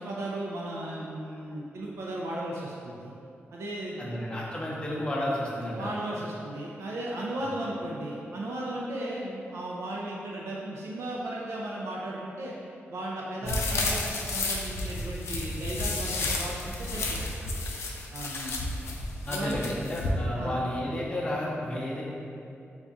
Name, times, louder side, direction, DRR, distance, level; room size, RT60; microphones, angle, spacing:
voice 1, 0.0-3.1 3.5-4.1 5.8-12.5 12.9-17.2 18.1-18.7 19.3-19.8 20.4-20.5, right 1 dB, 90° right, -4 dB, 0.4 m, -35 dB
voice 2, 4.0-5.9 13.4-13.6 19.3-22.0, left 1 dB, 20° left, -4 dB, 0.6 m, -32 dB
sound 1, 13.5-20.1, left 2 dB, 80° left, 0.4 m, -32 dB
3.5 x 2.3 x 3.9 m, 2.7 s
wide cardioid pair, 155°, 4 cm